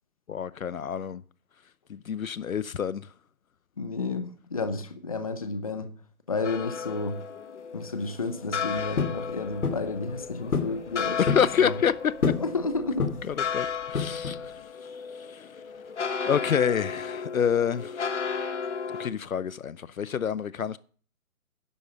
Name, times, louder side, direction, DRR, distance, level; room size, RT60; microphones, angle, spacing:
voice 1, 0.3-1.2 1.9-3.1 11.2-12.3 13.3-15.5 16.2-18.1 19.0-20.8, left 8 dB, 70° left, 0.8 m, -28 dB
voice 2, 3.8-5.9 6.3-7.2 7.7-11.2 11.6-11.7 12.4-13.1, left 3 dB, 25° left, 0.9 m, -31 dB
sound 1, 6.4-19.1, left 6 dB, 50° left, 1.5 m, -34 dB
sound 2, 9.0-9.2 9.6-9.9 10.5-10.8 11.0-11.5 12.2-12.5 13.0-13.4 13.9-14.4, left 5 dB, 90° left, 2.5 m, -27 dB
11.0 x 8.3 x 6.8 m
hypercardioid pair, 175°, 44 cm